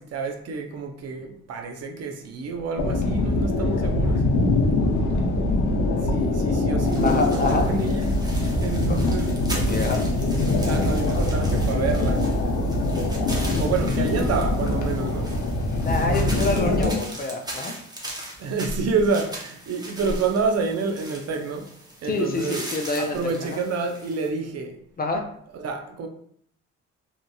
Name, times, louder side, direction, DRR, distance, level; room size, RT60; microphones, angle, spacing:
voice 1, 0.0-4.3 6.0-8.2 8.6-9.3 10.7-12.3 13.6-15.3 16.3-17.0 18.4-21.7 22.0-22.6 23.0-24.8 25.5-26.1, right 4 dB, 55° right, 0.5 m, -28 dB
sound 1, 2.8-16.9, left 2 dB, 75° left, 0.6 m, -23 dB
sound 2, 6.8-24.3, right 1 dB, 15° right, 0.7 m, -40 dB
voice 2, 7.0-7.7 8.9-9.0 9.5-10.0 15.8-17.7 22.1-23.6 25.0-25.2, left 2 dB, 30° left, 0.5 m, -26 dB
2.9 x 2.6 x 2.2 m
cardioid pair, 90°, 30 cm